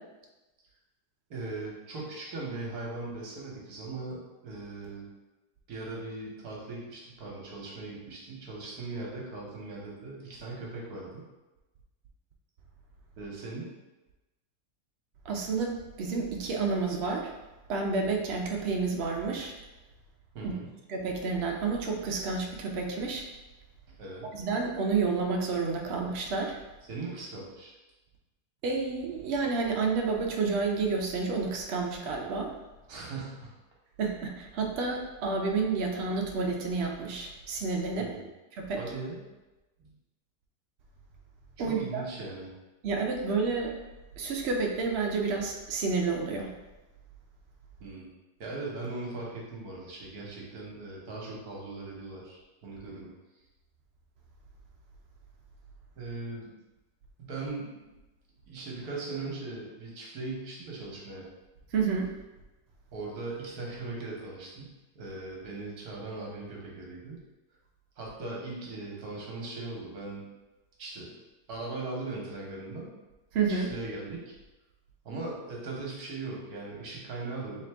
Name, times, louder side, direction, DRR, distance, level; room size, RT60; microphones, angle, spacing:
voice 1, 1.3-5.1 5.7-11.2 13.2-13.7 20.3-20.7 23.9-24.3 26.9-27.8 32.9-33.4 37.9-38.3 38.8-39.2 39.8-39.9 41.6-42.5 47.8-48.1 48.4-53.1 56.0-56.5 57.2-57.7 58.5-61.3 62.9-67.2 68.0-70.2 70.8-71.1 71.5-72.9 73.5-74.2 75.0-77.6, right 3 dB, 65° right, -3 dB, 1.4 m, -39 dB
voice 2, 15.3-17.3 17.7-19.5 20.4-20.5 20.9-23.2 24.3-26.6 28.6-32.5 34.0-38.1 38.6-38.8 41.6-42.0 42.8-43.7 44.2-46.5 61.7-62.1 73.3-73.7, right 4 dB, 80° right, 0 dB, 0.5 m, -30 dB
3.8 x 3.2 x 3.4 m, 1.1 s
omnidirectional pair, 1.9 m